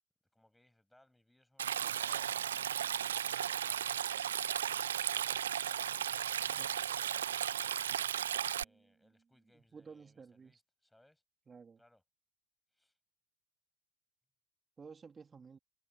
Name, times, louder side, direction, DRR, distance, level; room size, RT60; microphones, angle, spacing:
voice 1, 0.3-5.4 5.8-7.4 8.0-11.2 11.8-12.0 12.7-13.0, left 1 dB, 5° left, 7.6 m, -68 dB
Stream, 1.6-8.6, right 10 dB, 85° right, 0.5 m, -35 dB
voice 2, 8.6-9.3 9.5-10.6 11.5-11.8 14.8-15.6, right 5 dB, 25° right, 3.0 m, -54 dB
hypercardioid pair, 75°, 0 cm